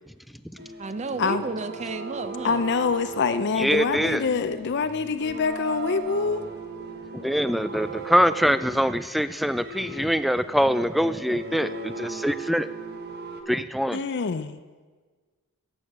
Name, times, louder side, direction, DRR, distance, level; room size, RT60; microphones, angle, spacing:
sound 1, 0.6-13.4, right 3 dB, 50° right, 1.2 m, -38 dB
voice 1, 0.8-2.6 13.2-13.6, right 3 dB, 30° right, 11 dB, 0.7 m, -33 dB
voice 2, 2.4-6.4 13.9-14.5, left 5 dB, 50° left, 11 dB, 0.5 m, -25 dB
voice 3, 3.6-4.2 7.1-12.7 13.5-14.0, equal, ahead, 13 dB, 0.3 m, -24 dB
13.0 x 8.3 x 7.4 m, 1.4 s
head